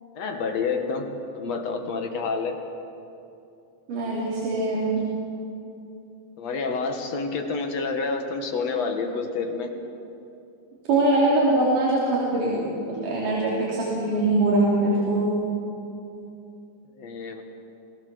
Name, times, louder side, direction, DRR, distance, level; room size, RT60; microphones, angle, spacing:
voice 1, 0.1-1.1 1.3-2.6 6.4-9.7 17.0-17.4, left 4 dB, 60° left, 4 dB, 2.7 m, -28 dB
voice 2, 3.9-5.1 10.9-15.4, right 2 dB, 90° right, -6 dB, 4.8 m, -23 dB
28.0 x 17.5 x 7.0 m, 2.7 s
omnidirectional pair, 3.6 m